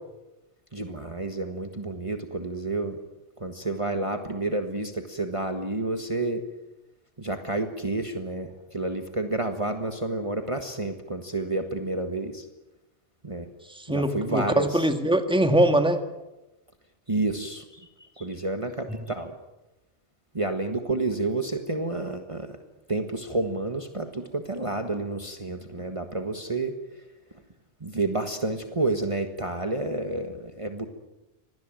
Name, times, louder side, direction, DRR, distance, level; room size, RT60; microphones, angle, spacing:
voice 1, 0.7-3.0 3.4-6.4 7.2-12.5 13.2-13.5 13.9-14.8 17.1-17.9 18.2-19.4 20.3-22.5 22.9-26.8 27.8-30.9, right 2 dB, 30° right, 5 dB, 1.6 m, -30 dB
voice 2, 13.7-16.0, right 1 dB, 5° right, 6 dB, 1.9 m, -22 dB
25.5 x 19.0 x 9.0 m, 1.0 s
omnidirectional pair, 1.1 m